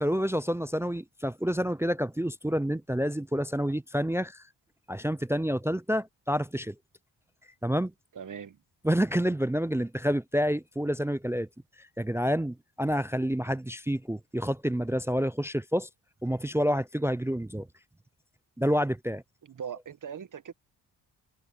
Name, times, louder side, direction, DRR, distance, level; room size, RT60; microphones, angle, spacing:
voice 1, 0.0-4.4 4.9-6.7 7.6-7.9 8.8-11.5 12.0-15.9 16.2-17.7 18.6-19.2, equal, 5° right, 0.3 m, -28 dB
voice 2, 8.1-8.6 19.4-20.5, right 7 dB, 50° right, 1.1 m, -40 dB
cardioid pair, 95°, 42 cm